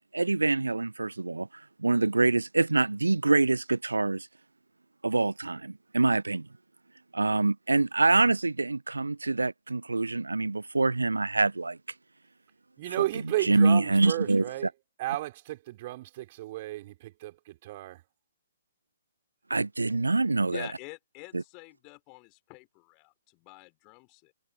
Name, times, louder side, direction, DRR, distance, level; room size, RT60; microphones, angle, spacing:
voice 1, 0.1-4.3 5.0-6.5 7.1-11.8 12.9-14.4 19.5-20.7 21.3-21.4, right 3 dB, 75° right, 0.6 m, -25 dB
voice 2, 12.8-14.7 15.0-18.0, right 16 dB, 35° right, 4.7 m, -33 dB
voice 3, 20.5-24.3, left 32 dB, 25° left, 4.8 m, -47 dB
figure-of-eight pair, 130°, 0 cm